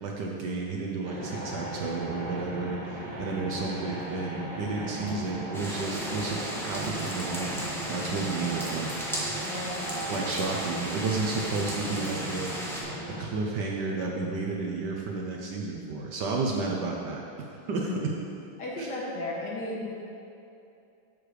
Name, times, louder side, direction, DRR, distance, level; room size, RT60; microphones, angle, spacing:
voice 1, 0.0-9.1 10.1-12.6 13.2-17.9 18.8-18.9, right 3 dB, 65° right, -1 dB, 1.2 m, -32 dB
sound 1, 1.0-13.3, right 1 dB, 40° right, 0.6 m, -37 dB
sound 2, 5.5-12.8, equal, ahead, 0.8 m, -36 dB
voice 2, 9.4-9.8 17.8-18.0 18.6-19.9, left 2 dB, 55° left, -4 dB, 1.9 m, -34 dB
7.6 x 6.5 x 4.8 m, 2.7 s
omnidirectional pair, 2.3 m